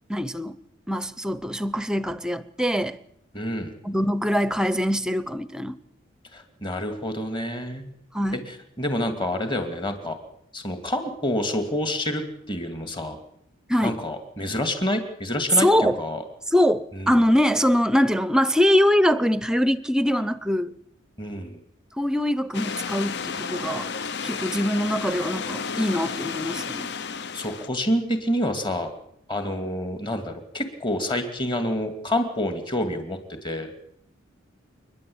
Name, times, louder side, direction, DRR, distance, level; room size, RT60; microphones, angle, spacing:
voice 1, 0.1-0.6 0.9-3.0 3.8-5.8 8.1-8.5 13.7-14.0 15.6-16.0 16.5-20.7 22.0-23.9 24.2-26.9, equal, 5° right, 0.7 m, -23 dB
voice 2, 3.3-3.7 6.3-7.9 8.8-10.2 10.5-13.2 13.8-16.2 16.9-17.2 21.2-21.6 27.3-28.9 29.3-33.7, left 1 dB, 25° left, 2.5 m, -28 dB
sound 1, 22.5-27.7, left 5 dB, 55° left, 0.8 m, -32 dB
29.0 x 10.5 x 8.7 m
head